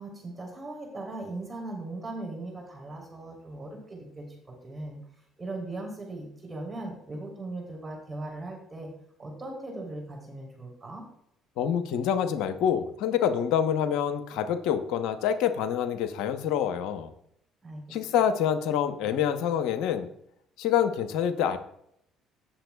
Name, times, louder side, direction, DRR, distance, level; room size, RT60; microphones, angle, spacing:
voice 1, 0.0-5.0 5.4-8.9 9.2-11.0 17.6-18.0, right 2 dB, 25° right, 1 dB, 3.3 m, -39 dB
voice 2, 11.6-17.1 17.9-20.1 20.6-21.6, left 9 dB, 75° left, 9 dB, 0.9 m, -26 dB
16.5 x 6.9 x 2.3 m, 0.74 s
hypercardioid pair, 65°, 0 cm